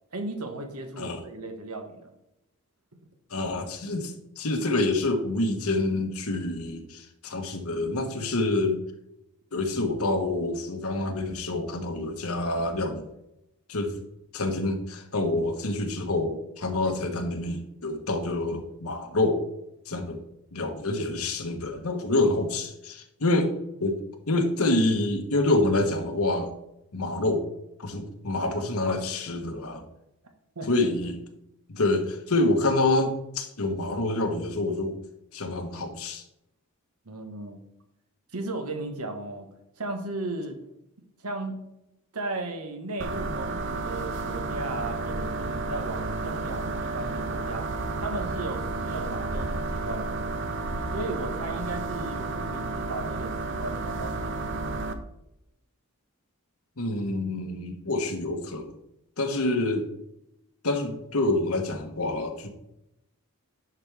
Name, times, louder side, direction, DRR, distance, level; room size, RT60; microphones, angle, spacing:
voice 1, 0.1-2.1 30.5-30.7 37.0-37.6 38.3-39.5 39.8-40.6 41.2-41.6 42.1-47.7 48.0-50.4 50.9-54.5 59.5-59.7, right 2 dB, 85° right, 5 dB, 1.4 m, -36 dB
voice 2, 3.3-8.8 9.5-13.1 13.7-13.9 14.3-19.4 19.9-20.2 20.5-24.0 24.3-26.5 26.9-27.4 27.8-29.8 30.7-31.2 31.7-35.0 35.3-36.2 56.8-58.7 59.2-59.9 60.6-62.5, left 2 dB, 80° left, 5 dB, 1.3 m, -27 dB
sound 1, 43.0-54.9, right 3 dB, 55° right, 0.8 m, -31 dB
11.0 x 6.1 x 3.5 m, 0.84 s
head